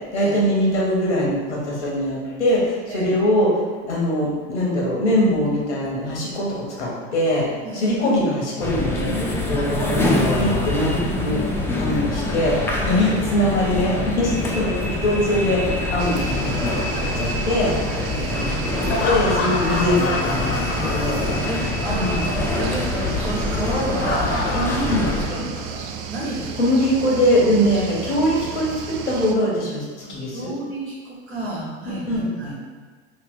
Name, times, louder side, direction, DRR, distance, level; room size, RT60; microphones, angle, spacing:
voice 1, 0.1-7.5 7.7-11.4 11.8-17.7 18.7-21.2 21.9-22.3 24.9-25.0 26.6-30.5 32.1-32.3, equal, 90° left, -4 dB, 1.1 m, -22 dB
voice 2, 7.6-8.0 9.8-10.1 12.8-13.1 17.9-18.6 21.5-25.8 26.1-26.7 30.0-32.5, right 1 dB, 85° right, -5 dB, 1.3 m, -30 dB
sound 1, 8.6-25.3, left 2 dB, 5° left, 0.4 m, -25 dB
Laughter, 9.2-13.2 14.9-17.0 18.7-21.8 22.1-22.2 23.7-25.8, left 2 dB, 45° left, 0.7 m, -30 dB
sound 2, 16.0-29.4, right 7 dB, 55° right, 0.4 m, -34 dB
3.2 x 2.2 x 3.6 m, 1.5 s
hypercardioid pair, 85°, 34 cm